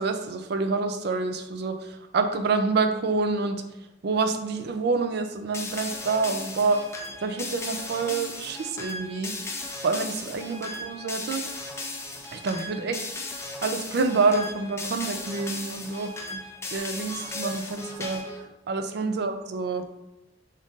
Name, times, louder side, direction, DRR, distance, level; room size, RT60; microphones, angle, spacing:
voice 1, 0.0-3.6 4.0-6.8 7.2-9.3 9.8-11.4 12.3-13.0 13.6-16.4 16.7-18.2 18.7-19.8, right 4 dB, 60° right, 7 dB, 0.4 m, -27 dB
sound 1, 5.5-18.4, left 2 dB, 15° left, 0.4 m, -36 dB
3.9 x 2.5 x 3.6 m, 0.93 s
head